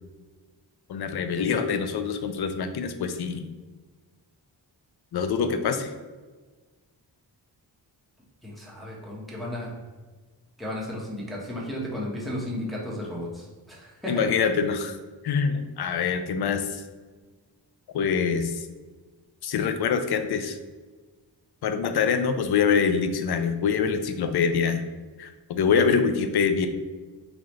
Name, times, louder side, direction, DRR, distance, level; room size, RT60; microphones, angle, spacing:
voice 1, 0.9-3.4 5.1-5.9 14.1-15.0 15.2-16.8 17.9-18.7 19.4-20.6 21.6-24.8 25.2-26.7, left 6 dB, 65° left, 8 dB, 0.5 m, -25 dB
voice 2, 8.4-9.7 10.6-14.3, left 1 dB, ahead, -5 dB, 1.2 m, -34 dB
3.8 x 3.0 x 3.1 m, 1.3 s
wide cardioid pair, 100°, 42 cm